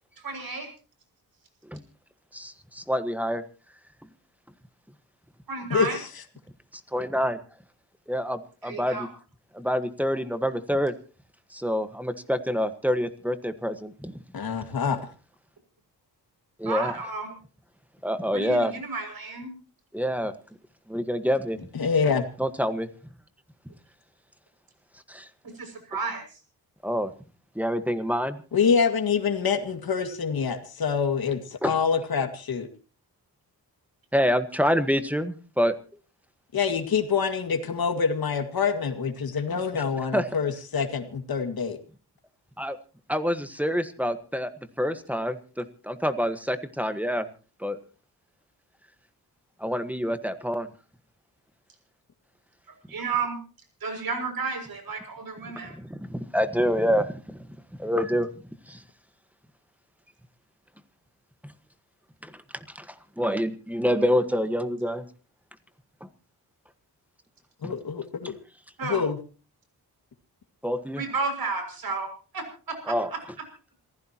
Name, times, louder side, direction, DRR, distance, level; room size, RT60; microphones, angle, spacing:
voice 1, 0.2-0.7 5.5-6.0 8.6-9.1 16.6-17.3 18.3-19.5 25.5-26.2 52.9-53.4 53.8-55.7 68.8-69.0 71.0-72.1 72.3-72.9, right 4 dB, 60° right, 6 dB, 6.4 m, -32 dB
voice 2, 2.3-3.4 6.9-7.4 8.1-9.1 9.5-10.9 11.5-14.2 16.6-17.0 18.0-18.7 19.9-20.3 20.9-21.6 22.4-22.9 25.1-25.3 26.8-27.1 27.5-28.4 31.6-31.7 34.1-35.8 39.7-39.8 40.1-40.3 42.6-42.8 43.1-44.5 44.8-47.3 47.6-47.8 49.6-50.7 55.4-57.5 57.8-58.3 58.7-58.8 62.2-65.1 66.0-66.1 67.6-67.7 70.6-71.0 72.9-73.1, equal, 5° right, 10 dB, 1.4 m, -27 dB
voice 3, 5.7-6.1 14.3-15.0 21.7-22.2 28.5-32.7 36.5-41.8 67.6-68.3 68.8-69.2, left 6 dB, 65° left, 6 dB, 2.2 m, -26 dB
27.5 x 15.5 x 3.0 m, 0.37 s
wide cardioid pair, 105°, 39 cm